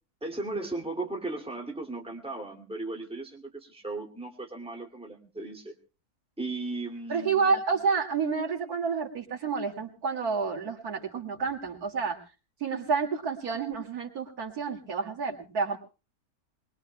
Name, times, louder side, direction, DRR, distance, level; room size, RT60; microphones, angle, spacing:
voice 1, 0.2-5.7 6.4-7.5, right 2 dB, 5° right, 1 dB, 2.4 m, -36 dB
voice 2, 7.1-12.2 12.6-15.8, right 5 dB, 85° right, 2 dB, 2.8 m, -29 dB
22.5 x 21.5 x 2.2 m, 0.32 s
omnidirectional pair, 1.6 m